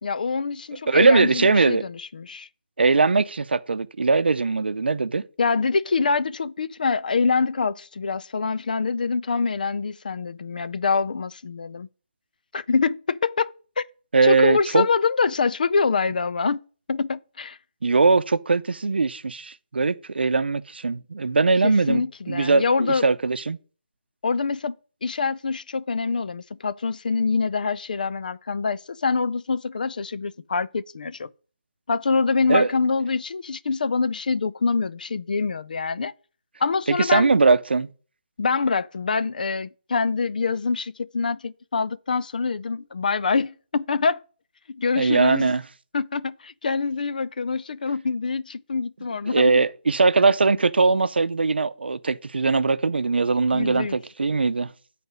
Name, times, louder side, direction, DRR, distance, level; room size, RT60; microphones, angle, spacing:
voice 1, 0.0-2.5 5.4-11.9 12.5-13.8 14.2-16.6 16.9-17.6 21.6-23.1 24.2-24.7 25.0-31.3 31.9-36.1 36.6-37.3 38.4-44.2 44.7-45.5 45.9-49.6 53.5-54.0, left 4 dB, 55° left, 0.4 m, -25 dB
voice 2, 0.9-1.8 2.8-5.2 14.1-14.9 17.8-23.6 32.5-32.7 36.9-37.9 45.0-45.6 49.3-54.7, right 4 dB, 90° right, 0.6 m, -20 dB
9.4 x 4.2 x 5.5 m
hypercardioid pair, 170°, 5 cm